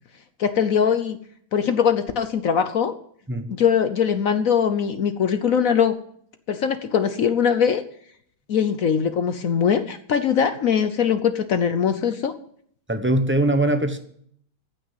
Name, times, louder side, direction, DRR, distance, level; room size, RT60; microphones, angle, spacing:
voice 1, 0.4-1.2 1.5-2.9 3.5-6.0 6.5-7.8 8.5-12.3, left 7 dB, 60° left, 10 dB, 1.0 m, -21 dB
voice 2, 12.9-14.0, right 1 dB, 15° right, 7 dB, 0.4 m, -21 dB
15.0 x 6.3 x 9.6 m, 0.63 s
omnidirectional pair, 2.1 m